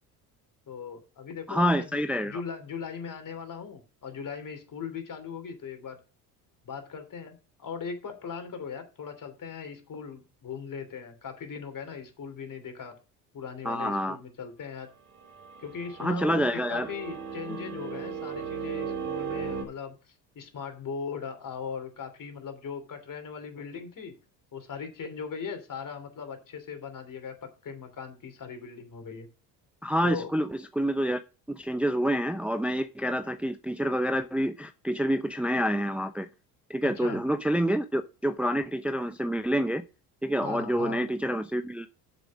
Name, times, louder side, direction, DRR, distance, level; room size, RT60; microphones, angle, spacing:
voice 1, 0.7-6.0 6.6-12.9 13.3-14.9 15.6-24.1 24.5-29.3 30.0-30.3 36.8-37.2 40.4-41.0, left 6 dB, 45° left, 7 dB, 3.0 m, -39 dB
voice 2, 1.5-2.4 13.6-14.2 16.0-16.9 17.5-17.6 29.8-31.2 31.5-36.3 36.7-39.8 40.2-41.9, equal, 5° right, 8 dB, 0.7 m, -27 dB
sound 1, 15.1-19.6, right 6 dB, 75° right, 3.2 m, -36 dB
7.4 x 6.8 x 6.2 m, 0.33 s
hypercardioid pair, 70°, 46 cm